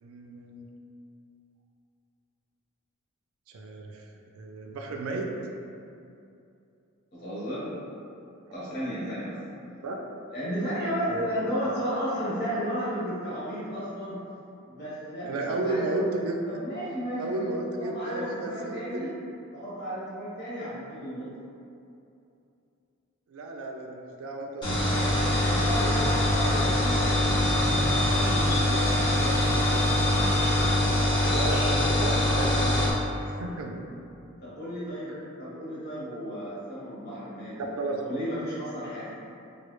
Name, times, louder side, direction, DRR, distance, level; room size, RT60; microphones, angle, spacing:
voice 1, 0.0-0.7 3.5-4.0 4.4-5.3 9.8-10.0 11.1-11.3 15.2-16.4 17.2-19.1 23.3-25.2 28.5-28.8 31.3-32.8 33.2-33.8 37.6-38.0, right 2 dB, 80° right, 1 dB, 0.4 m, -33 dB
voice 2, 7.1-7.7 8.5-9.4 10.3-14.2 14.7-15.9 16.5-17.4 17.8-19.1 19.5-21.3 25.4-29.5 34.4-37.7 38.0-39.2, equal, 50° left, -10 dB, 1.2 m, -33 dB
sound 1, 24.6-32.9, left 1 dB, 25° left, 0.9 m, -23 dB
3.1 x 2.3 x 3.0 m, 2.6 s
head